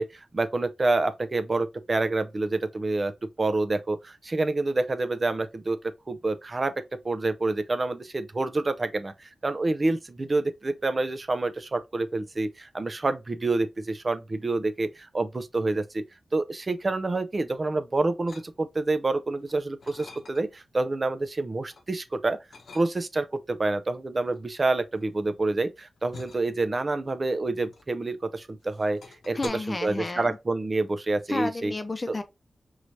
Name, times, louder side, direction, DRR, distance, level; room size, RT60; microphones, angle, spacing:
voice 1, 0.0-3.1 3.4-5.8 6.1-16.0 16.3-22.4 22.7-29.0 29.3-31.7 32.1-32.2, right 2 dB, 40° right, 0.5 m, -27 dB
sound 1, 18.3-18.9 19.4-20.7 21.1-21.9 22.5-23.3 24.2-28.3 28.6-29.5, left 3 dB, 80° left, 0.9 m, -48 dB
voice 2, 29.3-30.4 31.3-32.2, left 3 dB, 30° left, 0.7 m, -31 dB
4.7 x 3.1 x 2.6 m
wide cardioid pair, 80°, 0 cm